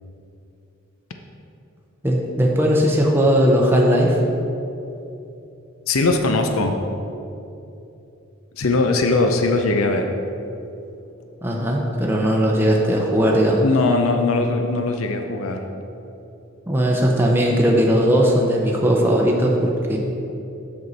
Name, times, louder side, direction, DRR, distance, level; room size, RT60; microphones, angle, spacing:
voice 1, 2.0-4.2 11.4-13.6 16.7-20.0, equal, 10° right, -1 dB, 0.6 m, -18 dB
voice 2, 5.9-6.8 8.6-10.1 13.6-15.7, left 3 dB, 80° left, 5 dB, 0.6 m, -20 dB
7.8 x 6.2 x 4.1 m, 2.8 s
head